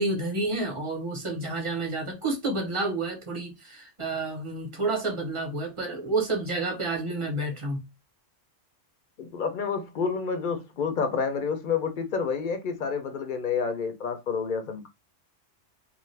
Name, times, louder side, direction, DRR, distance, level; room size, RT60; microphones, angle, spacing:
voice 1, 0.0-7.8, right 2 dB, 30° right, 0.9 m, -29 dB
voice 2, 9.2-14.9, left 5 dB, 55° left, 0.6 m, -29 dB
2.5 x 2.4 x 3.1 m
omnidirectional pair, 1.2 m